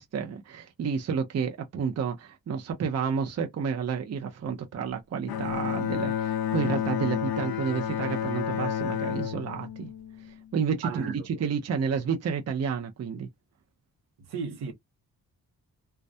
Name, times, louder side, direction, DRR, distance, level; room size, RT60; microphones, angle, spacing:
voice 1, 0.0-9.9 10.2-13.3, right 6 dB, 45° right, 0.5 m, -30 dB
Bowed string instrument, 5.3-10.7, left 9 dB, 70° left, 0.5 m, -30 dB
voice 2, 10.8-11.4 14.2-14.7, right 6 dB, 80° right, 0.9 m, -35 dB
2.2 x 2.1 x 2.6 m
wide cardioid pair, 125°, 38 cm